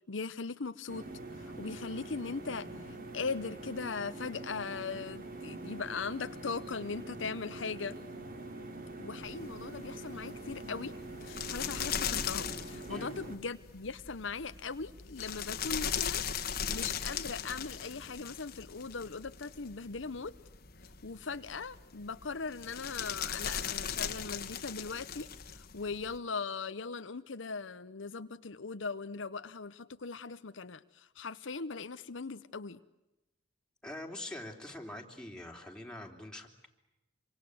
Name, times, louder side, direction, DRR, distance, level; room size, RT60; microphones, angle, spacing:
voice 1, 0.1-1.1 1.4-8.0 9.0-10.9 11.2-16.3 16.7-20.4 21.0-32.8, left 4 dB, 70° left, 11 dB, 0.9 m, -39 dB
sound 1, 0.9-13.4, right 2 dB, 50° right, 3.4 m, -45 dB
sound 2, 9.2-26.2, left 8 dB, 50° left, 1.7 m, -39 dB
voice 2, 33.8-36.7, left 1 dB, 5° left, 1 dB, 3.5 m, -44 dB
27.0 x 25.5 x 7.9 m, 0.97 s
head